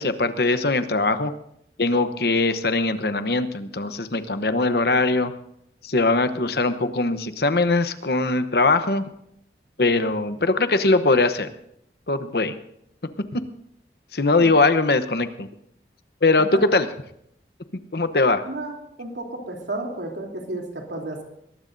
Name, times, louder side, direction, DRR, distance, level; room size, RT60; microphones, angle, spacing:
voice 1, 0.0-1.3 1.8-5.3 5.8-9.0 9.8-11.5 12.1-12.5 13.3-13.4 14.1-15.5 16.2-16.9 17.9-18.4, left 3 dB, 65° left, 10 dB, 1.0 m, -21 dB
voice 2, 18.4-21.2, right 2 dB, 90° right, 1 dB, 3.3 m, -32 dB
22.0 x 19.5 x 2.7 m, 0.75 s
head